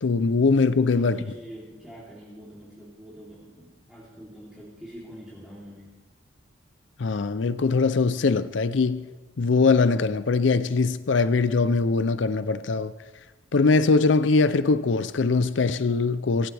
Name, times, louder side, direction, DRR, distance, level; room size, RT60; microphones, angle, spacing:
voice 1, 0.0-1.2 7.0-9.1 9.4-12.9 13.5-16.5, left 4 dB, 70° left, 0.5 m, -22 dB
voice 2, 0.8-6.0, right 1 dB, 5° right, 3.3 m, -44 dB
23.5 x 15.5 x 3.4 m
head